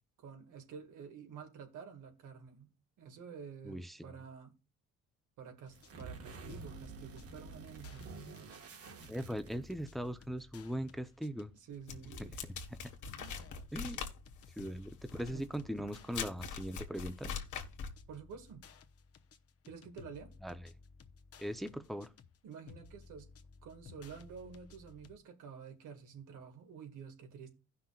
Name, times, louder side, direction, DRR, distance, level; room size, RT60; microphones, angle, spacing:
voice 1, 0.2-2.7 3.0-4.5 5.4-8.1 11.5-12.4 13.2-13.5 15.3-15.5 15.8-15.9 18.1-18.7 19.7-20.3 22.4-23.3 23.6-27.5, right 6 dB, 85° right, 2.0 m, -50 dB
voice 2, 3.6-4.1 9.1-11.5 13.7-14.0 14.6-17.3 20.4-20.7 21.4-22.1, equal, ahead, 0.8 m, -40 dB
sound 1, 5.6-25.2, left 5 dB, 50° left, 1.1 m, -57 dB
sound 2, 5.7-9.9, right 4 dB, 50° right, 1.6 m, -49 dB
sound 3, 11.9-18.0, left 6 dB, 80° left, 1.6 m, -43 dB
16.5 x 5.8 x 2.4 m
cardioid pair, 90°, 30 cm